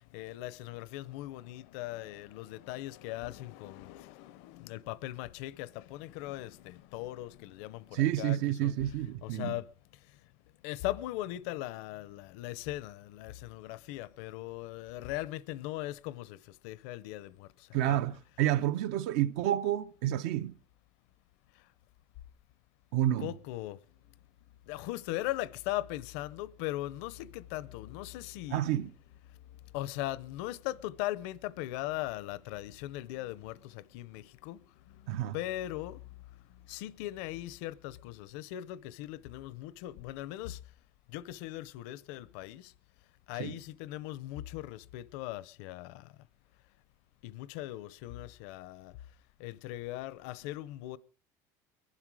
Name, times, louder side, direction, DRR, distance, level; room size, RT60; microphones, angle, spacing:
voice 1, 0.1-8.7 9.2-9.6 10.6-16.4 16.6-17.5 17.9-18.0 23.2-23.8 24.7-28.6 29.7-34.6 35.3-36.0 36.7-40.6 41.1-42.6 43.3-45.9 47.2-48.9 49.4-51.0, left 16 dB, 85° left, 0.7 m, -39 dB
voice 2, 7.9-9.6 17.7-20.5 22.9-23.3 28.5-28.9 35.1-35.4 43.4-43.6, right 13 dB, 85° right, 0.6 m, -29 dB
22.0 x 11.5 x 4.8 m
cardioid pair, 175°, 8 cm